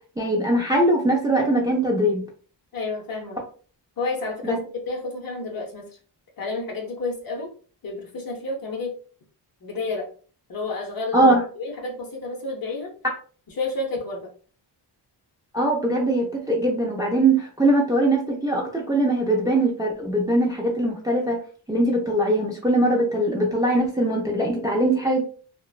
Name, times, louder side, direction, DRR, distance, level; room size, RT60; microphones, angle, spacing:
voice 1, 0.2-2.3 4.4-4.6 11.1-11.4 15.5-21.4 21.7-25.2, right 1 dB, 10° right, -1 dB, 0.3 m, -21 dB
voice 2, 2.7-3.4 4.0-5.9 6.4-7.5 7.8-9.0 9.6-10.1 10.5-12.9 13.6-14.3, left 3 dB, 55° left, 1 dB, 0.8 m, -30 dB
3.0 x 2.1 x 2.3 m, 0.40 s
wide cardioid pair, 155°, 42 cm